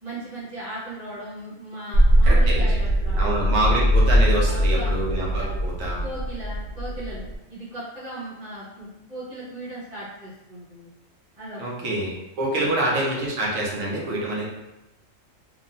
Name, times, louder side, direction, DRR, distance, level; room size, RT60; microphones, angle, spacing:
voice 1, 0.0-3.6 4.4-4.9 5.2-5.5 6.0-10.9 11.4-12.0 12.5-12.8 14.1-14.2, right 1 dB, 30° right, -11 dB, 1.1 m, -38 dB
sound 1, 1.9-7.3, equal, 55° left, 0.7 m, -20 dB
voice 2, 2.2-2.7 3.1-6.0 11.6-14.4, right 1 dB, 90° right, -4 dB, 1.2 m, -26 dB
3.0 x 2.3 x 2.5 m, 0.97 s
omnidirectional pair, 1.4 m